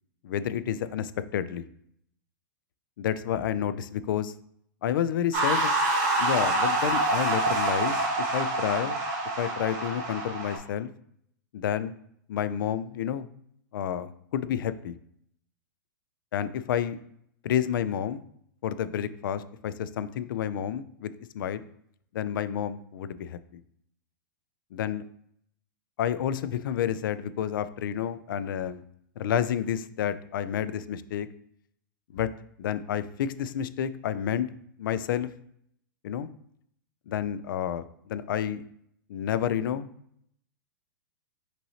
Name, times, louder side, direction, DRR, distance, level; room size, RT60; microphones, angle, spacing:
voice 1, 0.2-1.6 3.0-4.3 4.8-5.7 6.2-8.0 8.3-9.0 9.4-10.9 11.5-11.9 12.3-13.3 13.7-15.0 16.3-17.0 17.4-18.2 18.6-21.6 22.1-23.4 24.7-25.0 26.0-28.8 29.2-31.3 32.1-32.3 32.6-34.5 34.8-35.3 36.0-36.3 37.1-38.6 39.1-39.9, left 9 dB, 75° left, 14 dB, 0.4 m, -30 dB
sound 1, 5.3-10.6, right 2 dB, 45° right, 1.1 m, -26 dB
5.5 x 3.0 x 2.8 m, 0.70 s
supercardioid pair, 150°, 11 cm